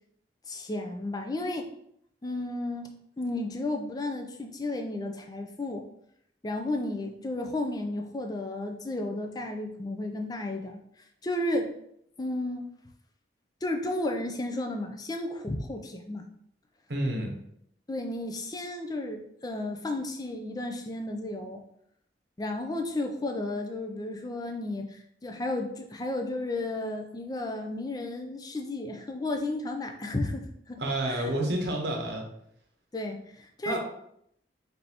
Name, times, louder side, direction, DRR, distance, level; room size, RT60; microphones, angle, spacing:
voice 1, 0.5-1.7 2.2-5.8 6.4-10.8 11.2-11.7 12.2-12.7 13.6-16.3 17.9-21.6 22.4-31.3 32.9-33.8, left 2 dB, 20° left, 4 dB, 0.4 m, -33 dB
voice 2, 16.9-17.3 30.8-32.2 33.6-33.8, right 1 dB, 70° right, 1 dB, 0.9 m, -29 dB
3.9 x 3.4 x 2.8 m, 0.72 s
head